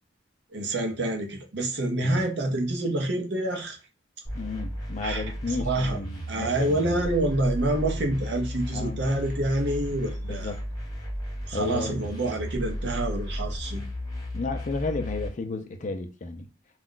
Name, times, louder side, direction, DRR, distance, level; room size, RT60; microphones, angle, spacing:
voice 1, 0.5-3.8 5.0-6.0 6.3-10.5 11.5-13.8, right 1 dB, 60° right, 0.7 m, -27 dB
sound 1, 4.2-15.3, equal, 20° left, 1.0 m, -34 dB
voice 2, 4.3-7.1 8.7-9.0 10.2-10.6 11.5-12.0 14.3-16.5, left 3 dB, 40° left, 0.4 m, -33 dB
2.3 x 2.1 x 3.7 m
head